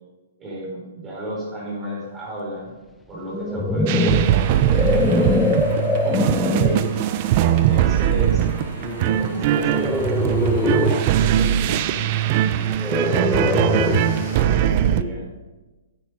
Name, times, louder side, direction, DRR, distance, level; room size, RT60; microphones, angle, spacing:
voice 1, 0.4-2.7 3.1-5.5 6.0-7.0 7.4-8.4 8.8-15.3, right 1 dB, 20° right, -5 dB, 4.0 m, -32 dB
sound 1, 3.2-6.9 7.5-7.8 9.6-11.1 12.8-14.2, left 3 dB, 10° left, 0.7 m, -22 dB
sound 2, 3.9-15.0, right 11 dB, 40° right, 0.5 m, -21 dB
sound 3, 4.0-14.5, left 2 dB, 50° left, 3.8 m, -40 dB
9.1 x 8.5 x 4.9 m, 1.2 s
hypercardioid pair, 140°, 0 cm